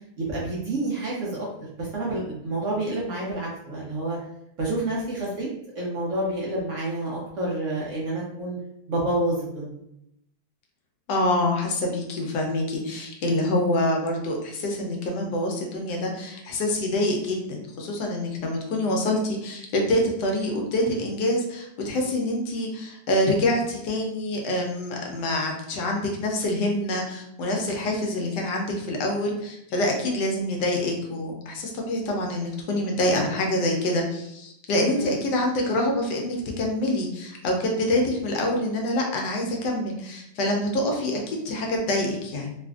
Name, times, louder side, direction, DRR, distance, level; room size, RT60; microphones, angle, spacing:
voice 1, 0.2-1.5 1.8-4.2 4.6-5.5 5.7-8.6 8.9-9.8 34.9-35.2, right 1 dB, 60° right, -4 dB, 0.8 m, -28 dB
voice 2, 11.1-42.6, left 1 dB, 80° left, 1 dB, 1.2 m, -26 dB
3.2 x 2.4 x 2.3 m, 0.80 s
omnidirectional pair, 1.8 m